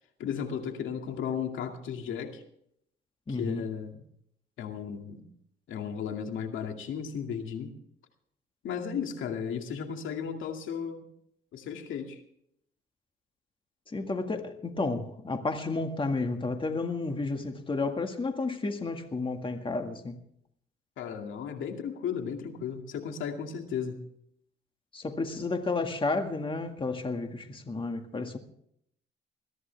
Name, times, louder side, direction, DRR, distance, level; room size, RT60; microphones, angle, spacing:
voice 1, 0.2-2.4 3.3-4.0 4.6-5.3 5.7-7.7 8.6-11.1 11.5-12.2 21.0-24.0, left 7 dB, 80° left, 2.3 m, -35 dB
voice 2, 3.3-3.7 13.9-20.2 24.9-28.4, left 3 dB, 25° left, 1.9 m, -32 dB
22.0 x 14.5 x 3.4 m
cardioid pair, 90°, 20 cm